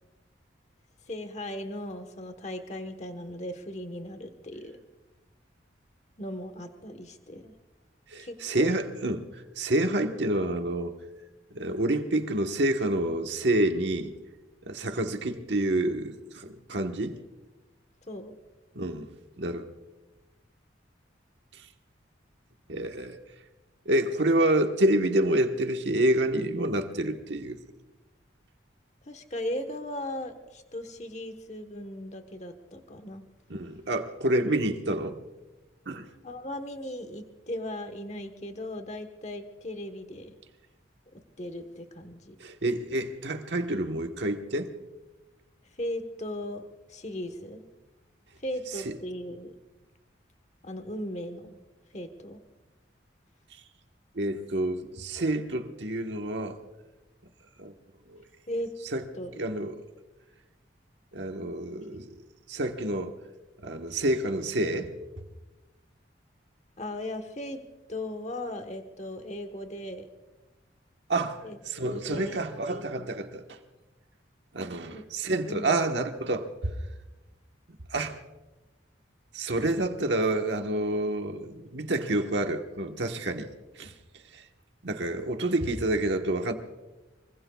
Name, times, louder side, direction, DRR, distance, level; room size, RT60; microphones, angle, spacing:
voice 1, 1.1-4.8 6.2-7.5 8.2-8.7 18.1-18.3 29.1-33.2 36.2-40.3 41.1-42.4 45.8-46.6 46.9-47.6 48.4-49.5 50.6-51.6 51.9-52.4 58.5-58.7 59.1-59.3 66.8-67.6 67.9-70.1 71.4-72.4 72.7-73.1 74.9-75.0 75.5-75.8, left 1 dB, 35° left, 1.2 m, -37 dB
voice 2, 8.1-11.0 11.5-14.1 14.6-17.2 18.7-19.1 19.4-19.7 21.5-21.6 22.7-23.2 23.8-27.6 33.5-35.2 35.9-36.1 42.4-44.7 48.8-49.0 54.1-56.6 57.6-57.7 58.1-58.2 58.9-59.8 61.1-62.1 62.5-63.1 63.6-64.9 71.1-73.6 74.5-76.7 77.9-78.2 79.3-83.9 84.3-84.4 84.8-86.5, right 1 dB, 70° right, 1.3 m, -28 dB
25.5 x 24.0 x 2.4 m
head